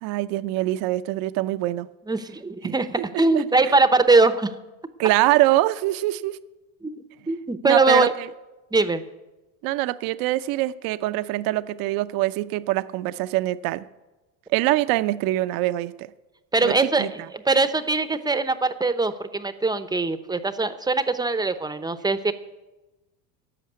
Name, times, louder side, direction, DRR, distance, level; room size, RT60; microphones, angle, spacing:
voice 1, 0.0-1.9 2.6-3.7 5.0-6.4 7.6-8.3 9.6-13.9 14.5-16.1 16.6-17.1, right 16 dB, 55° right, 13 dB, 0.7 m, -24 dB
voice 2, 2.1-4.5 6.8-8.1 8.7-9.0 16.5-22.3, right 3 dB, 10° right, 11 dB, 0.8 m, -22 dB
12.0 x 7.4 x 9.4 m, 1.1 s
supercardioid pair, 100°, 41 cm